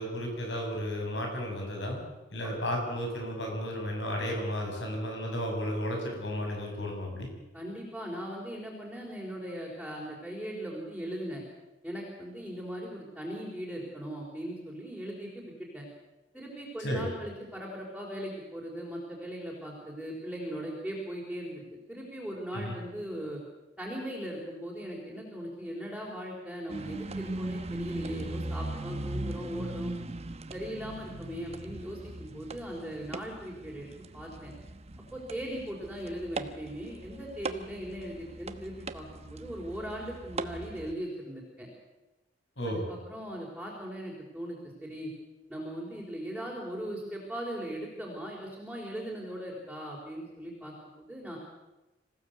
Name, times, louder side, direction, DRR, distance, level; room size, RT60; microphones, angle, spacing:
voice 1, 0.0-2.0 2.3-7.3 16.8-17.1 22.5-22.7 42.6-42.8, equal, 75° left, 2 dB, 7.4 m, -33 dB
voice 2, 7.5-11.4 11.8-15.9 16.3-21.6 21.9-23.4 23.8-29.9 30.5-34.5 35.1-41.7 42.6-45.1 45.5-51.4, equal, ahead, -4 dB, 4.6 m, -39 dB
sound 1, 26.7-40.9, right 2 dB, 35° right, 1.1 m, -39 dB
26.0 x 16.0 x 8.3 m, 1.0 s
head